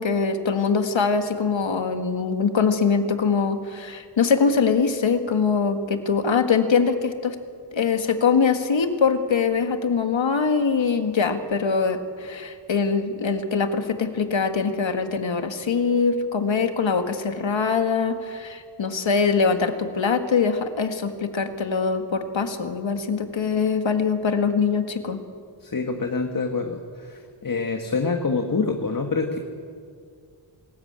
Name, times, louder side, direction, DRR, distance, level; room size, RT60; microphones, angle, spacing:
voice 1, 0.0-7.4 7.7-25.2, left 5 dB, 65° left, 7 dB, 1.8 m, -23 dB
voice 2, 25.6-29.4, left 4 dB, 40° left, 4 dB, 1.7 m, -26 dB
25.5 x 14.0 x 8.8 m, 2.2 s
wide cardioid pair, 80°, 49 cm